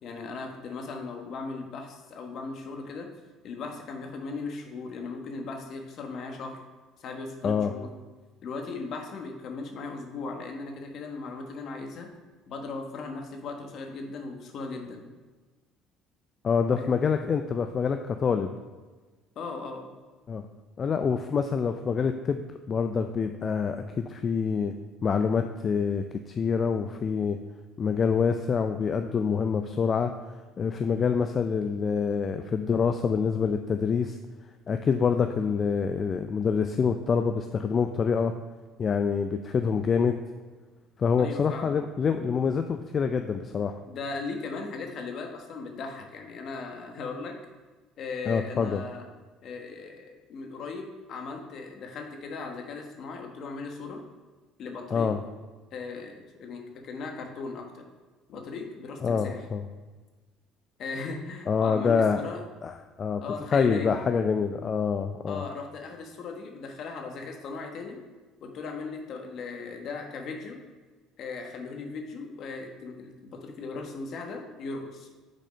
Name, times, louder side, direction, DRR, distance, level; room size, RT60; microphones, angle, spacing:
voice 1, 0.0-3.1 3.4-6.6 7.0-7.9 8.4-12.1 12.5-15.0 16.7-17.0 19.3-19.9 41.2-41.8 43.9-47.4 48.0-49.1 49.4-54.0 54.6-55.1 55.7-57.9 58.3-59.5 60.8-62.4 63.2-64.0 65.3-68.0 68.4-70.6 71.2-75.1, left 4 dB, 55° left, 3 dB, 1.1 m, -37 dB
voice 2, 16.4-18.5 20.3-20.5 20.8-24.7 25.0-27.4 27.8-30.1 30.6-34.1 34.7-38.3 38.8-40.2 41.0-43.8 48.3-48.8 54.9-55.2 59.0-59.7 61.5-62.2 62.6-63.2 63.5-65.4, left 6 dB, 40° left, 7 dB, 0.4 m, -26 dB
6.4 x 4.2 x 5.0 m, 1.3 s
supercardioid pair, 95°, 0 cm